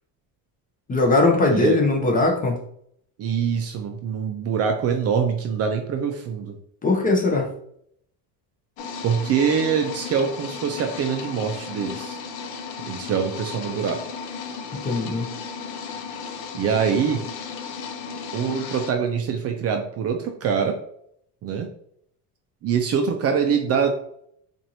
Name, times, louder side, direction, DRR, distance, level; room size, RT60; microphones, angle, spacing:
voice 1, 0.9-2.6 6.8-7.5 14.8-15.3, left 3 dB, 20° left, 1 dB, 0.7 m, -20 dB
voice 2, 3.2-6.6 9.0-12.2 12.9-14.0 16.5-17.2 18.3-20.8 21.4-21.7 22.6-24.0, right 6 dB, 40° right, 5 dB, 0.5 m, -24 dB
sound 1, 8.8-18.9, left 6 dB, 85° left, 0.7 m, -35 dB
4.4 x 2.6 x 2.8 m, 0.67 s
cardioid pair, 140°, 39 cm